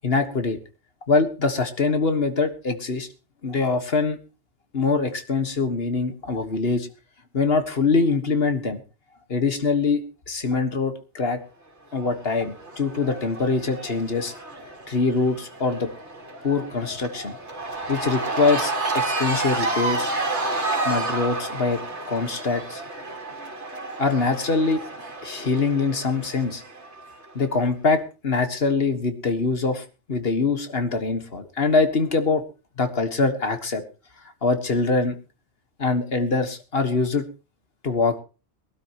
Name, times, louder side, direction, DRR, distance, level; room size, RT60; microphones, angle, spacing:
voice 1, 0.0-0.6 1.1-3.1 3.4-4.2 4.7-6.9 7.3-8.8 9.3-11.4 11.9-14.3 14.9-15.9 16.4-17.4 17.9-20.1 20.9-21.8 22.1-22.8 24.0-24.8 25.2-26.6 27.4-32.4 32.8-33.8 34.4-35.2 35.8-37.3 37.8-38.2, left 4 dB, 60° left, 8 dB, 1.8 m, -23 dB
Cheering / Crowd, 12.0-27.2, right 2 dB, 75° right, 3.4 m, -30 dB
22.5 x 12.5 x 3.0 m, 0.32 s
omnidirectional pair, 1.2 m